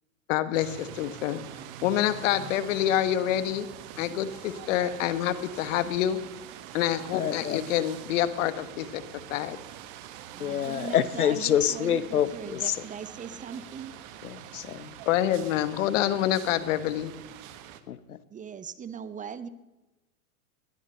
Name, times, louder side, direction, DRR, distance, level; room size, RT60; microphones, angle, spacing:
voice 1, 0.3-1.4 1.8-3.7 4.0-6.2 6.7-9.0 9.3-9.6 15.0-17.1, left 11 dB, 60° left, 13 dB, 1.5 m, -27 dB
sound 1, 0.5-17.8, right 11 dB, 45° right, 1.5 m, -45 dB
voice 2, 7.1-7.7 10.4-12.7 14.2-15.0 17.9-18.2, left 9 dB, 90° left, 16 dB, 1.0 m, -27 dB
voice 3, 10.3-13.9 18.3-19.5, right 7 dB, 20° right, 14 dB, 0.8 m, -40 dB
19.5 x 11.0 x 6.7 m, 1.1 s
hypercardioid pair, 105°, 43 cm